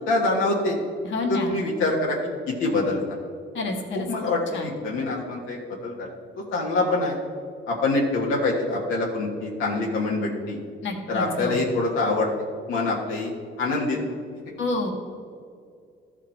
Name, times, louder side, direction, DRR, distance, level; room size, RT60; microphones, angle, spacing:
voice 1, 0.1-0.8 1.3-2.2 2.6-3.2 3.9-6.1 6.5-7.2 7.7-10.6 11.1-12.3 12.7-13.3 13.6-14.0, left 2 dB, 90° left, -2 dB, 1.4 m, -25 dB
voice 2, 1.0-1.5 3.5-4.1 4.5-4.7 10.8-11.6 14.6-14.9, left 3 dB, 70° left, 1 dB, 1.6 m, -28 dB
13.5 x 5.0 x 4.4 m, 2.4 s
cardioid pair, 90°, 20 cm